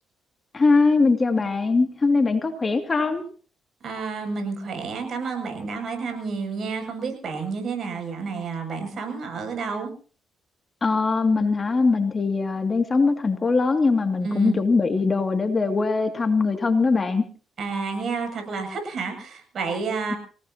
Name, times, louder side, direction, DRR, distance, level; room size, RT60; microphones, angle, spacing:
voice 1, 0.5-3.2 10.8-17.2, left 4 dB, 30° left, 6 dB, 2.5 m, -21 dB
voice 2, 3.8-9.9 14.2-14.6 17.6-20.2, right 4 dB, 55° right, 5 dB, 7.6 m, -30 dB
26.5 x 18.5 x 2.9 m, 0.40 s
cardioid pair, 90°, 0 cm